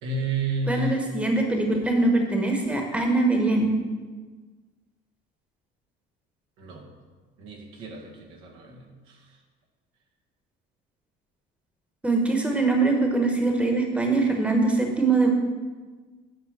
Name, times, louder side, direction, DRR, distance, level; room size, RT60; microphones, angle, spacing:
voice 1, 0.0-1.0 6.6-6.9 7.4-9.2, right 2 dB, 80° right, -1 dB, 1.6 m, -31 dB
voice 2, 0.7-3.7 12.0-15.3, right 3 dB, 5° right, 2 dB, 1.2 m, -22 dB
8.4 x 3.7 x 6.5 m, 1.4 s
supercardioid pair, 100°, 20 cm